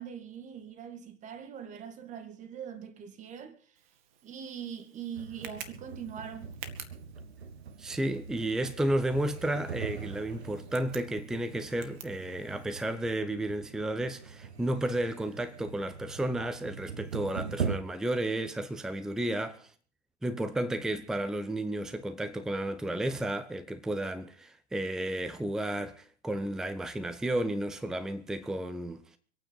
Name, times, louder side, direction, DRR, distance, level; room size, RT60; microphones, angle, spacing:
voice 1, 0.0-3.6 4.2-6.5, right 8 dB, 20° right, 1.9 m, -42 dB
Tick, 3.8-12.9, right 9 dB, 40° right, 1.9 m, -51 dB
sound 1, 5.1-17.8, right 6 dB, 65° right, 1.8 m, -41 dB
voice 2, 7.8-19.7 20.2-29.2, right 1 dB, ahead, 0.8 m, -32 dB
25.0 x 9.3 x 5.5 m
figure-of-eight pair, 110°, 36 cm